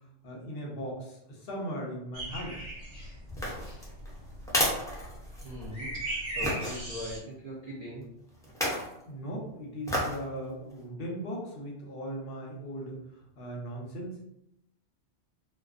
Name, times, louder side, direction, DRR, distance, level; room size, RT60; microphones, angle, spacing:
voice 1, 0.2-2.6 9.0-13.0 13.4-14.2, equal, 65° left, -2 dB, 0.7 m, -38 dB
sound 1, 2.1-7.2, right 1 dB, 70° right, 1.2 m, -38 dB
sound 2, 3.3-5.7 6.4-6.8 8.4-8.9 9.9-10.2 10.7-10.8, equal, 5° left, 0.3 m, -31 dB
voice 2, 5.4-8.1, equal, 45° right, -6 dB, 0.5 m, -41 dB
2.4 x 2.2 x 2.4 m, 0.82 s
omnidirectional pair, 1.1 m